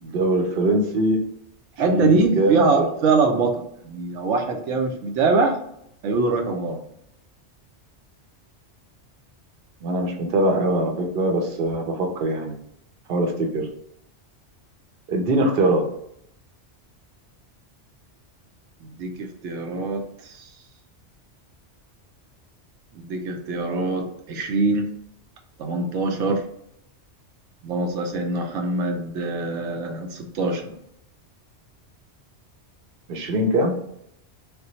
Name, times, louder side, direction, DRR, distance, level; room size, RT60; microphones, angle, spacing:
voice 1, 0.0-1.2 1.9-2.9 9.8-12.5 13.1-13.7 15.1-15.9 33.1-33.9, right 1 dB, 60° right, 2 dB, 0.8 m, -22 dB
voice 2, 1.8-5.6 6.0-6.8 18.8-20.4 22.9-24.8 25.6-26.4 27.6-30.7, right 3 dB, 85° right, 2 dB, 0.9 m, -23 dB
3.3 x 2.2 x 2.9 m, 0.74 s
omnidirectional pair, 1.2 m